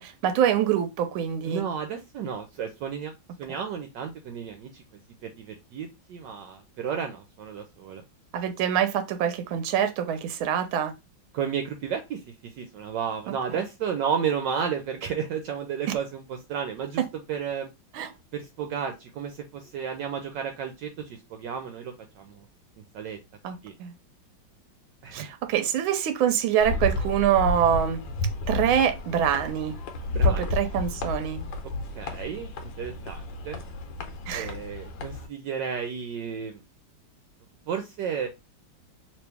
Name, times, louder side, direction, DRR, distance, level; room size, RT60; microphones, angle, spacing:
voice 1, 0.0-1.6 8.3-10.9 15.9-16.0 17.0-17.1 17.9-18.1 23.4-23.9 25.1-28.0 28.5-29.7 30.2-31.4 34.3-34.5, right 9 dB, 90° right, 1.4 m, -25 dB
voice 2, 1.5-3.1 3.4-4.8 5.2-8.0 11.3-17.0 17.3-17.7 18.3-22.4 22.9-23.2 23.6-23.7 25.0-25.3 30.1-30.5 32.0-32.5 32.8-33.6 34.3-36.6 37.7-38.3, right 7 dB, 75° right, 1.1 m, -32 dB
sound 1, 26.6-35.3, left 2 dB, 75° left, 1.4 m, -31 dB
3.1 x 3.0 x 3.3 m
omnidirectional pair, 2.2 m